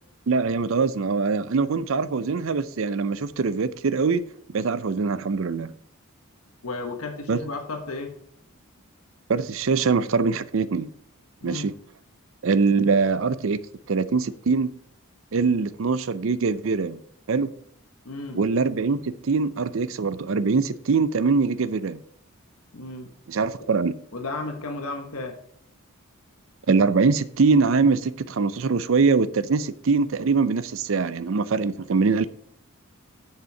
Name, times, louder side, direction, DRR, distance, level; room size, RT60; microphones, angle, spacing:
voice 1, 0.3-4.2 4.5-5.7 7.3-7.4 9.3-10.9 11.4-11.7 12.4-13.6 13.9-14.7 15.3-17.0 17.3-17.5 18.3-22.0 23.3-23.9 26.7-32.3, right 4 dB, 65° right, 0.5 m, -23 dB
voice 2, 6.6-8.1 11.4-11.7 18.0-18.4 22.7-23.1 24.1-25.4, left 3 dB, 85° left, 1.3 m, -33 dB
6.9 x 6.7 x 4.8 m
head